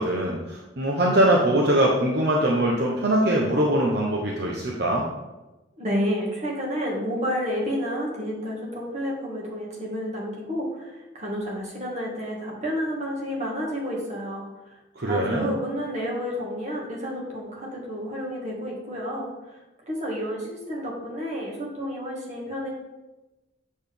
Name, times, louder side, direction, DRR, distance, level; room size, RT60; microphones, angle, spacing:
voice 1, 0.0-5.1 15.0-15.5, right 1 dB, 60° right, -2 dB, 0.9 m, -22 dB
voice 2, 5.8-14.5 15.0-19.6 19.9-22.7, equal, 35° right, -3 dB, 1.9 m, -30 dB
8.0 x 6.5 x 3.5 m, 1.1 s
head